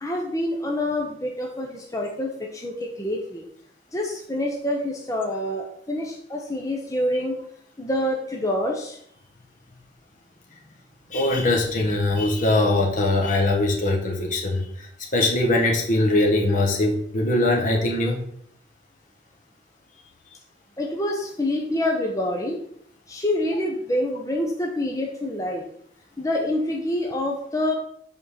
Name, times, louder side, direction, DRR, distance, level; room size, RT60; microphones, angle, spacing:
voice 1, 0.0-3.5 3.9-7.4 7.8-9.0 20.8-22.6 23.1-25.6 26.2-27.7, left 1 dB, 20° left, 0 dB, 0.9 m, -26 dB
voice 2, 11.1-14.6 15.1-18.2, left 2 dB, 45° left, 0 dB, 1.3 m, -21 dB
5.6 x 4.5 x 6.4 m, 0.67 s
head